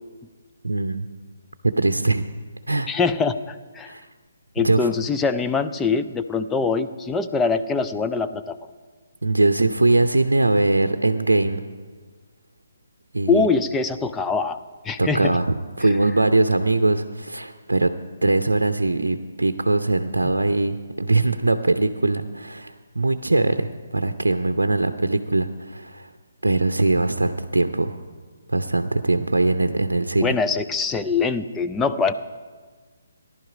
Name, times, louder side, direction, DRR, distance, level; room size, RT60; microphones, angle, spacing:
voice 1, 0.6-1.1 1.8-2.3 2.7-2.9 3.9-4.1 4.6-4.9 9.2-11.6 13.1-13.5 15.0-17.9 18.2-26.1 26.4-28.0 28.5-30.3, right 2 dB, 75° right, 8 dB, 0.6 m, -21 dB
voice 2, 2.9-3.9 4.6-8.6 13.3-14.6 14.8-15.4 20.2-20.3 30.2-32.1, left 4 dB, 10° left, 8 dB, 0.5 m, -23 dB
17.5 x 11.0 x 4.9 m, 1.5 s
figure-of-eight pair, 140°, 0 cm